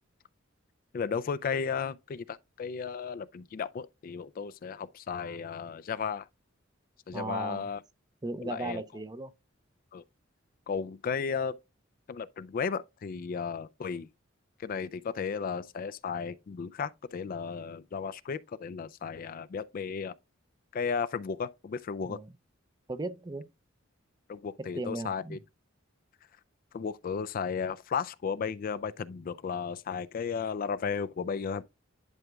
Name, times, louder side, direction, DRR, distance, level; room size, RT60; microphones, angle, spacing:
voice 1, 0.9-6.3 7.1-7.8 8.4-8.8 9.9-10.0 10.7-11.6 12.1-14.1 14.6-20.1 20.7-22.2 24.3-25.4 26.7-31.6, left 6 dB, 45° left, 0.3 m, -34 dB
voice 2, 7.1-7.6 8.2-9.3 22.1-22.3 22.9-23.5 24.7-25.4, right 2 dB, 20° right, 0.5 m, -36 dB
11.0 x 4.9 x 2.3 m
head